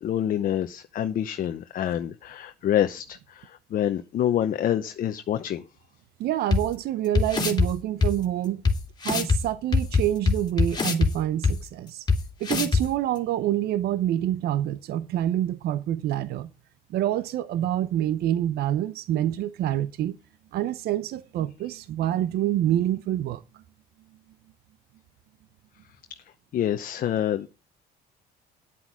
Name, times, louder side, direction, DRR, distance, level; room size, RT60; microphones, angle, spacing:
voice 1, 0.0-5.6 26.5-27.5, left 11 dB, 55° left, 0.8 m, -27 dB
voice 2, 6.2-8.6 9.0-12.1 12.4-16.5 16.9-20.2 20.5-23.6, right 12 dB, 70° right, 0.7 m, -27 dB
sound 1, 6.5-6.6 7.1-7.7 8.0-8.1 8.6-8.7 9.0-9.4 9.7-11.1 11.4-11.5 12.1-12.2 12.4-12.8, left 4 dB, 25° left, 2.6 m, -21 dB
10.0 x 7.9 x 6.1 m
cardioid pair, 110°, 17 cm